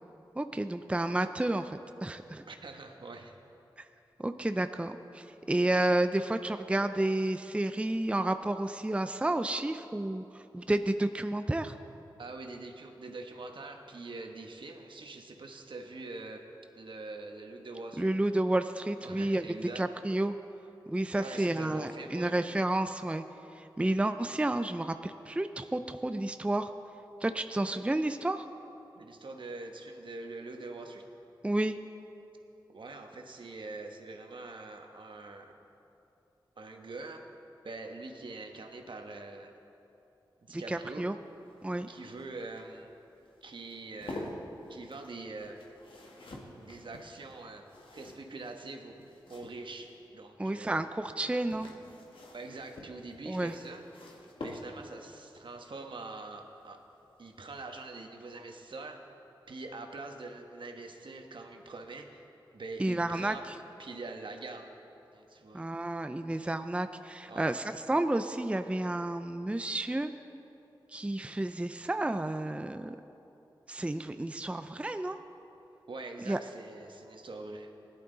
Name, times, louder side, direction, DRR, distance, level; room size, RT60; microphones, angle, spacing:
voice 1, 0.4-2.4 3.8-3.9 4.2-11.7 18.0-19.5 19.8-20.3 20.9-23.2 23.6-26.7 27.2-28.5 31.4-31.8 40.5-41.2 41.6-41.9 50.4-51.7 53.3-53.5 62.8-63.6 65.5-70.1 70.9-73.0 73.7-75.2 76.3-76.4, right 1 dB, 15° right, 9 dB, 0.5 m, -31 dB
voice 2, 2.5-3.3 12.2-16.4 16.7-18.1 19.0-19.9 21.2-22.4 28.9-31.0 32.7-35.5 36.6-37.2 37.6-39.5 40.4-41.1 41.9-42.9 43.4-44.3 44.7-45.6 46.6-47.7 47.9-48.9 49.3-50.8 52.3-53.8 54.4-56.8 57.2-59.0 59.5-62.2 62.5-63.5 63.8-64.7 65.1-65.7 67.3-67.6 75.9-77.7, right 3 dB, 70° right, 3 dB, 1.2 m, -44 dB
sound 1, 41.2-50.0 51.2-55.1 56.7-57.0 57.3-57.4, left 1 dB, 75° left, 1.6 m, -48 dB
17.0 x 11.0 x 3.9 m, 2.9 s
cardioid pair, 40°, 9 cm